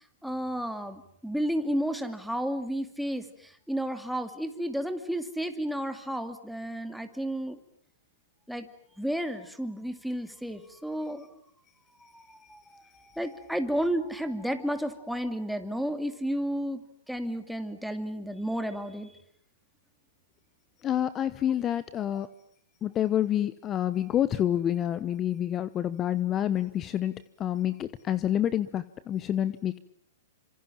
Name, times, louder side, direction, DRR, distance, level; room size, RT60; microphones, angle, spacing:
voice 1, 0.0-7.6 8.5-8.7 9.0-11.4 12.1-12.8 13.1-19.2, equal, ahead, 7 dB, 2.5 m, -32 dB
voice 2, 20.8-22.3 22.8-29.8, left 11 dB, 25° left, 16 dB, 1.0 m, -28 dB
28.5 x 26.0 x 7.5 m, 0.66 s
hypercardioid pair, 125°, 0 cm